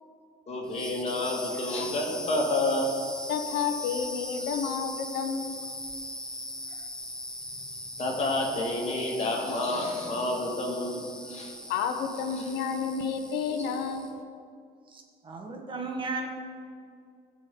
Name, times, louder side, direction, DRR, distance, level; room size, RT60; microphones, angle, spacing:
voice 1, 0.5-2.9 8.0-11.6 12.3-12.5, left 2 dB, 40° left, -1 dB, 2.0 m, -29 dB
sound 1, 0.6-14.2, left 1 dB, 5° left, 0.7 m, -40 dB
voice 2, 3.3-5.6 11.7-14.1, left 6 dB, 80° left, 5 dB, 0.8 m, -30 dB
voice 3, 14.9-16.3, right 3 dB, 30° right, 2 dB, 1.4 m, -35 dB
15.5 x 5.3 x 3.8 m, 2.3 s
cardioid pair, 110°, 17 cm